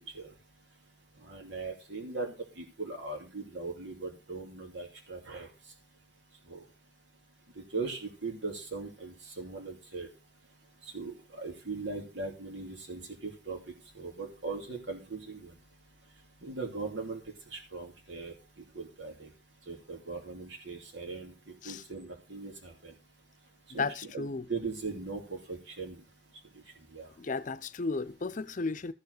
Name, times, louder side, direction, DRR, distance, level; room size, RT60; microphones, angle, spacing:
voice 1, 1.2-5.5 6.5-6.6 7.6-10.1 10.9-13.6 13.9-15.5 16.4-17.2 17.5-18.3 18.7-19.3 19.7-22.9 23.7-23.8 24.1-26.0 26.9-27.1, right 3 dB, 90° right, 2.8 m, -39 dB
voice 2, 23.8-24.5 27.2-28.9, left 4 dB, 45° left, 0.6 m, -34 dB
14.0 x 4.8 x 6.5 m
head